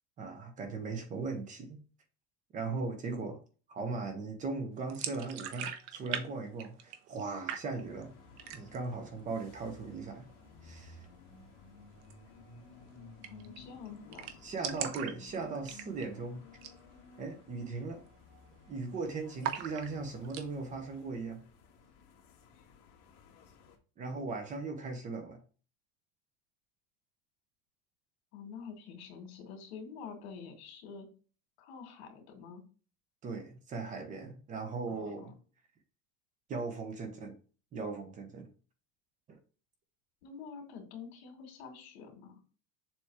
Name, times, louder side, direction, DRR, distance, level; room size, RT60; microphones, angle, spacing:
voice 1, 0.2-1.8 2.5-3.4 3.7-8.1 8.5-10.3 10.6-11.0 14.4-16.4 17.2-18.0 18.7-21.4 24.0-25.4 33.2-35.3 36.5-37.4 37.7-38.5 39.3-39.4, right 3 dB, 25° right, 1.0 m, -38 dB
sound 1, 4.9-6.2 6.5-7.2 7.5-8.0 8.4-8.9 9.2-9.3 9.7-10.3 12.0-12.1 12.5-12.6 12.8-12.9 13.2-13.6 13.8-13.9 14.1-16.2 16.5-16.8 17.1-17.2 17.8-18.1 18.3-18.9 19.4-20.5, right 9 dB, 70° right, 1.0 m, -39 dB
sound 2, 7.8-23.8, left 3 dB, 50° left, 2.1 m, -56 dB
voice 2, 13.3-14.3 28.3-31.1 31.6-32.6 34.9-35.3 40.2-42.4, left 6 dB, 80° left, 2.3 m, -47 dB
7.3 x 3.1 x 4.8 m
cardioid pair, 170°, 32 cm